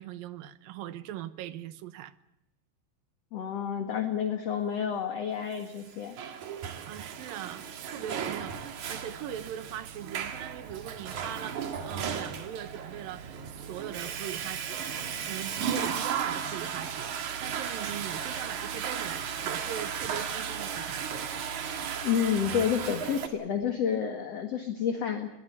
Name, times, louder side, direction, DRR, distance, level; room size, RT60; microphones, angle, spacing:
voice 1, 0.0-2.1 6.9-14.9 15.2-21.1, right 11 dB, 75° right, 2.6 m, -40 dB
voice 2, 3.3-6.2 22.0-25.3, left 8 dB, 50° left, 2.5 m, -29 dB
Water / Toilet flush, 5.8-23.3, right 7 dB, 55° right, 3.0 m, -35 dB
23.0 x 19.0 x 7.9 m
omnidirectional pair, 4.4 m